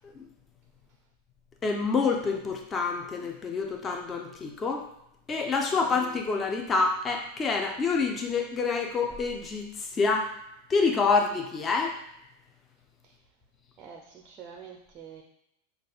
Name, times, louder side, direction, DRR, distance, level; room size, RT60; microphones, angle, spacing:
voice 1, 1.6-4.9 5.3-10.3 10.7-12.0, left 4 dB, 20° left, 2 dB, 0.5 m, -27 dB
voice 2, 5.7-6.0 13.0-13.1 13.8-15.2, right 7 dB, 30° right, 1 dB, 0.4 m, -46 dB
6.0 x 2.4 x 2.4 m, 0.82 s
figure-of-eight pair, 90°, 0 cm